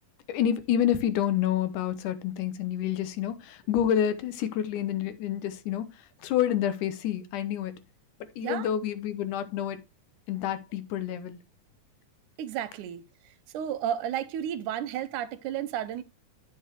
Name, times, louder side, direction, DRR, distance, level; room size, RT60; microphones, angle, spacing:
voice 1, 0.3-7.8 8.4-9.8 10.3-11.4, left 10 dB, 85° left, 2.5 m, -28 dB
voice 2, 12.4-13.0 13.5-16.0, right 10 dB, 90° right, 2.3 m, -32 dB
10.5 x 7.2 x 3.0 m
omnidirectional pair, 3.5 m